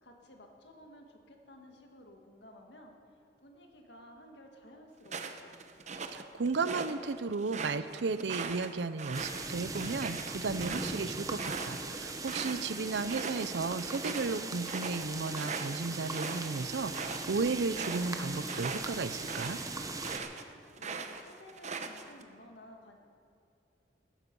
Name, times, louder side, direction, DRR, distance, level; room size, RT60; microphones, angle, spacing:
voice 1, 0.0-5.6 20.8-23.0, left 1 dB, 75° left, 2 dB, 1.9 m, -54 dB
sound 1, 5.1-6.9 7.3-12.7 13.0-13.5 13.8-20.4 20.8-22.2, right 4 dB, 40° right, 0.9 m, -40 dB
voice 2, 6.1-19.6, right 4 dB, 80° right, 14 dB, 0.6 m, -34 dB
sound 2, 9.1-20.2, right 3 dB, 20° right, 1.0 m, -40 dB
15.0 x 13.0 x 5.4 m, 2.5 s
head